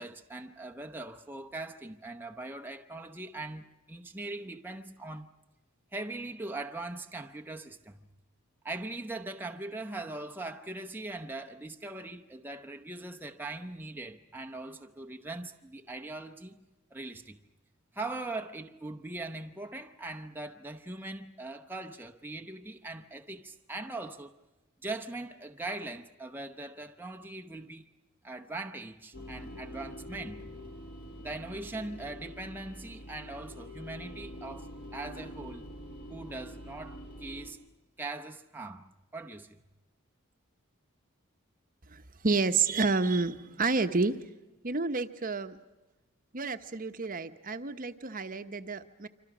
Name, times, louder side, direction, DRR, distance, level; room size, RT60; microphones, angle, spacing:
voice 1, 0.0-5.3 5.9-8.1 8.6-16.6 16.9-17.4 17.9-24.3 24.8-27.8 28.2-30.5 31.2-35.7 36.1-37.6 38.0-39.6, right 2 dB, 10° right, 0.8 m, -41 dB
sound 1, 29.1-37.5, equal, 50° left, 5.2 m, -45 dB
voice 2, 41.9-44.2 44.6-45.6 46.3-49.1, right 4 dB, 40° right, 1.0 m, -30 dB
27.0 x 25.5 x 6.1 m
head